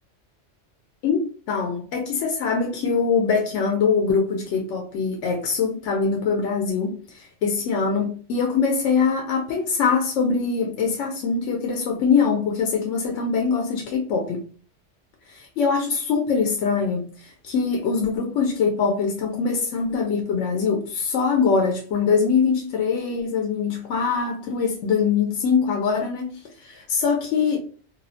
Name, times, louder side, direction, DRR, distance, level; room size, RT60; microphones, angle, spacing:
voice 1, 1.5-14.4 15.3-27.6, left 5 dB, 80° left, 0.9 m, -23 dB
2.7 x 2.0 x 2.5 m
omnidirectional pair, 1.2 m